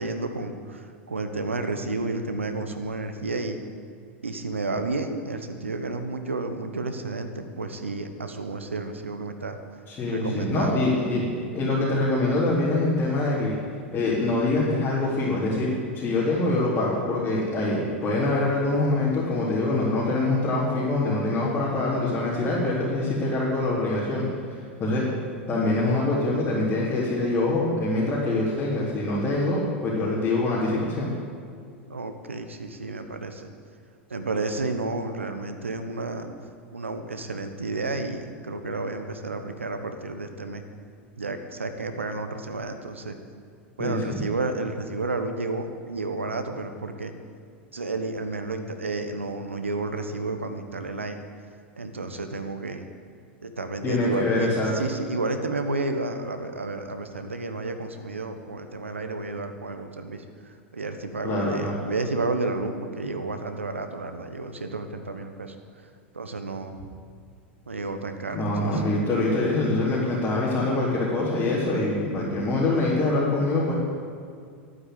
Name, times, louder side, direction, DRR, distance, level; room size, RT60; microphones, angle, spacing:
voice 1, 0.0-3.6 4.2-9.6 10.1-10.9 31.9-33.5 34.1-36.3 36.7-40.6 41.2-43.1 43.8-47.1 47.7-51.2 51.8-52.8 53.4-60.2 60.7-65.5 66.1-66.8 67.7-68.8 72.2-72.4, right 3 dB, 90° right, 7 dB, 1.2 m, -31 dB
voice 2, 9.9-11.2 11.5-13.6 13.9-24.2 24.8-25.1 25.5-31.1 43.8-44.2 53.8-54.7 61.2-61.7 68.3-73.8, left 2 dB, 25° left, -8 dB, 4.1 m, -24 dB
12.0 x 9.6 x 8.3 m, 2.3 s
hypercardioid pair, 90°, 7 cm